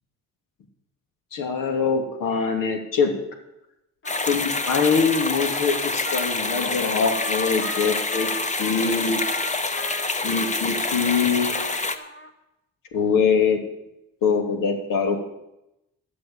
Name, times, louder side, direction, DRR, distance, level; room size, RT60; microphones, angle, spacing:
voice 1, 1.3-3.1 4.3-8.3 8.6-9.2 10.2-11.9 12.9-13.6 14.2-15.2, left 5 dB, 70° left, 4 dB, 2.8 m, -23 dB
Trumpet, 4.0-12.3, left 2 dB, 35° left, 1.8 m, -38 dB
sound 1, 4.1-12.0, left 3 dB, 20° left, 1.2 m, -27 dB
12.0 x 7.8 x 8.7 m, 0.88 s
supercardioid pair, 75°, 34 cm